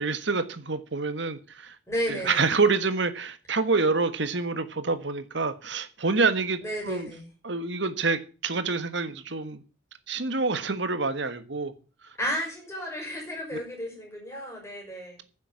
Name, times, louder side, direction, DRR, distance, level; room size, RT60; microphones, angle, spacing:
voice 1, 0.0-1.8 2.1-6.6 6.8-7.1 7.4-9.6 10.1-11.7 12.0-12.1, right 4 dB, 65° right, 1.5 m, -27 dB
voice 2, 1.9-2.5 6.6-7.2 12.2-15.2, equal, 15° left, 6.0 m, -33 dB
10.5 x 7.4 x 8.3 m
head